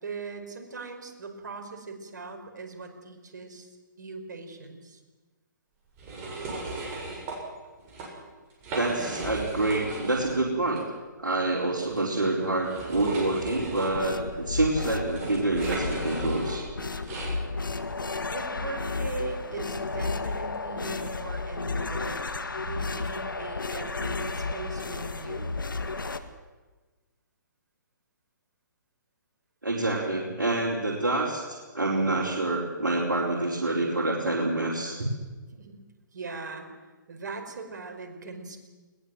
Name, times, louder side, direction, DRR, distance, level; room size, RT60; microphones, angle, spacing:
voice 1, 0.0-3.7 4.0-5.0 18.3-22.2 22.6-25.6 35.5-35.8 36.1-36.7 37.1-38.6, right 4 dB, 65° right, 4 dB, 4.9 m, -39 dB
sound 1, 6.0-7.4 7.8-8.1 8.5-10.4 10.7-10.8 11.8-17.4, right 2 dB, 25° right, 7.5 m, -36 dB
voice 2, 8.7-10.8 11.2-16.6 29.6-35.1, right 2 dB, 85° right, -4 dB, 4.5 m, -27 dB
sound 2, 13.9-26.2, left 3 dB, 85° left, 1.8 m, -33 dB
21.0 x 19.5 x 7.8 m, 1.3 s
figure-of-eight pair, 135°, 11 cm